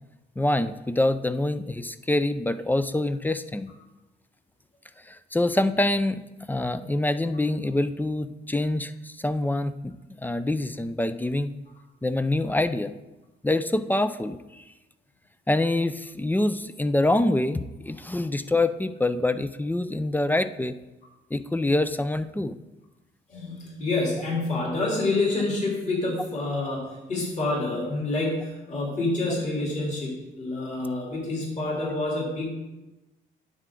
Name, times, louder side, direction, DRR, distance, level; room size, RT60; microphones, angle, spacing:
voice 1, 0.4-3.7 5.0-6.2 6.5-11.5 12.0-13.0 13.4-14.6 15.5-20.8 21.3-22.6, left 1 dB, 10° left, 12 dB, 0.4 m, -25 dB
voice 2, 23.3-32.5, left 2 dB, 35° left, -4 dB, 3.3 m, -28 dB
9.9 x 7.4 x 3.8 m, 1.0 s
cardioid pair, 90°, 20 cm